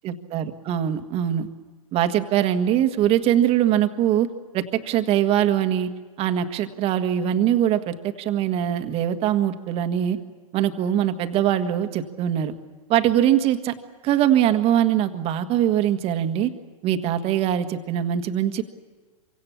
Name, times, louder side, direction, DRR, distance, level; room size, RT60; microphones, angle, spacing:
voice 1, 0.0-1.5 1.9-4.3 4.5-5.9 6.2-10.2 10.5-12.5 12.9-13.7 14.0-16.5 16.8-18.6, right 10 dB, 30° right, 8 dB, 1.7 m, -22 dB
26.5 x 24.5 x 7.2 m, 1.3 s
hypercardioid pair, 125°, 19 cm